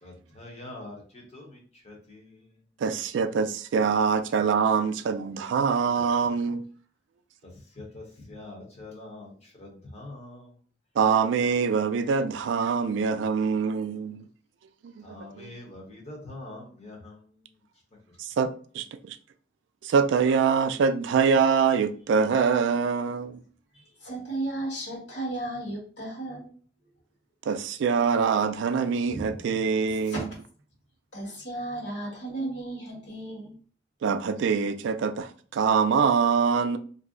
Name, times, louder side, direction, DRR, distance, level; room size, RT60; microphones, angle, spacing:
voice 1, 0.0-2.6 7.5-10.6 15.0-17.6, left 2 dB, 35° left, 0.9 m, -44 dB
voice 2, 2.8-6.6 11.0-14.3 14.8-15.5 18.2-19.2 19.8-23.4 27.5-30.3 34.0-36.8, right 6 dB, 75° right, 0.3 m, -24 dB
voice 3, 23.7-26.5 29.1-29.3 30.1-30.2 31.1-33.5, right 2 dB, 65° left, 1.4 m, -34 dB
2.6 x 2.0 x 3.7 m
head